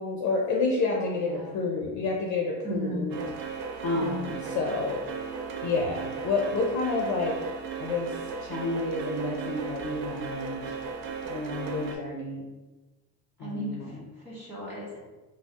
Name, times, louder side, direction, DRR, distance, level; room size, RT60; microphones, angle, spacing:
voice 1, 0.0-3.2 3.8-5.0 5.6-7.3 7.8-10.7 11.3-12.5 13.4-13.9, left 3 dB, 40° left, 0 dB, 0.4 m, -29 dB
voice 2, 0.9-1.6 2.6-3.1 3.9-4.2 13.4-15.0, right 1 dB, 5° right, -8 dB, 1.2 m, -36 dB
sound 1, 3.1-12.0, right 5 dB, 75° right, 0.6 m, -36 dB
4.2 x 2.0 x 2.8 m, 1.1 s
cardioid pair, 150°, 47 cm